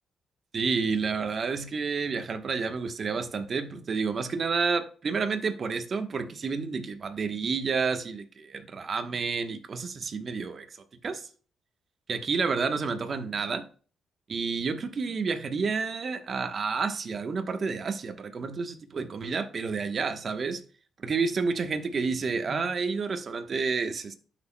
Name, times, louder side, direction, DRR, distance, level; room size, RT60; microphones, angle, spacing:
voice 1, 0.5-10.6 11.0-11.3 12.1-13.6 14.3-20.6 21.0-24.2, right 5 dB, 50° right, 1.1 m, -30 dB
12.0 x 6.1 x 2.3 m
supercardioid pair, 60°, 0 cm